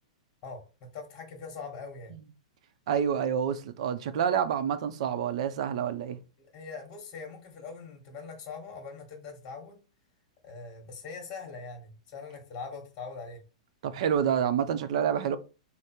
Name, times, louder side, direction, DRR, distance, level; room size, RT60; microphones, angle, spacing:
voice 1, 0.9-2.1 6.4-9.8 10.4-13.4, left 4 dB, 35° left, 1.2 m, -42 dB
voice 2, 2.9-6.2 13.8-15.4, right 8 dB, 60° right, 0.5 m, -28 dB
3.4 x 2.1 x 4.2 m
hypercardioid pair, 125°, 4 cm